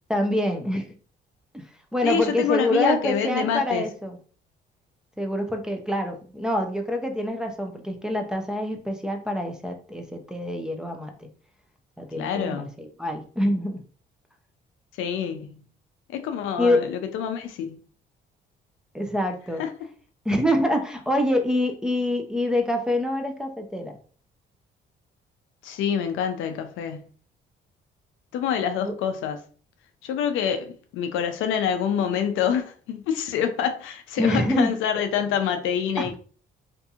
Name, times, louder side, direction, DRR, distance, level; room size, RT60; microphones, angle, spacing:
voice 1, 0.1-0.9 1.5-1.7 1.9-4.2 5.2-11.3 12.0-13.8 16.6-16.8 18.9-19.6 20.3-24.0 28.8-28.9 34.2-34.7 36.0-36.2, left 1 dB, 5° right, 0.5 m, -26 dB
voice 2, 2.0-3.9 12.2-12.7 15.0-15.7 16.1-17.8 19.6-19.7 25.6-27.1 28.3-29.4 30.0-36.2, left 8 dB, 90° left, 0.4 m, -26 dB
2.7 x 2.6 x 2.3 m
cardioid pair, 90°, 20 cm